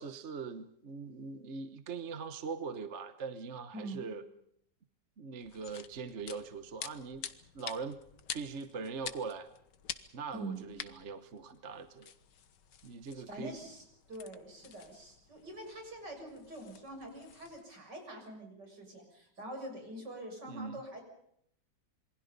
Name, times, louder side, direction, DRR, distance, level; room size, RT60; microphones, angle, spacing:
voice 1, 0.0-4.2 5.2-7.2 7.5-8.0 8.3-9.5 10.1-12.1 12.8-13.6 20.4-20.8, right 5 dB, 45° right, 10 dB, 1.3 m, -41 dB
voice 2, 3.7-4.0 10.3-10.6 13.1-21.0, right 1 dB, 70° right, 3 dB, 7.5 m, -45 dB
sound 1, 5.4-17.6, left 8 dB, 75° left, 1.8 m, -49 dB
27.5 x 23.5 x 5.4 m, 0.71 s
omnidirectional pair, 1.9 m